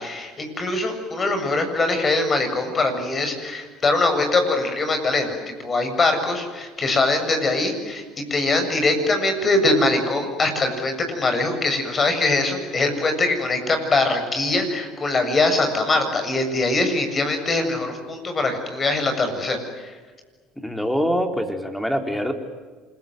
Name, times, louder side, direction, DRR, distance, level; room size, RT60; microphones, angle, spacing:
voice 1, 0.0-8.0 8.3-19.6 19.8-19.9, left 2 dB, 30° left, 6 dB, 7.2 m, -22 dB
voice 2, 20.6-22.3, equal, 5° left, 5 dB, 4.3 m, -24 dB
28.0 x 22.5 x 9.5 m, 1.4 s
supercardioid pair, 85°, 0 cm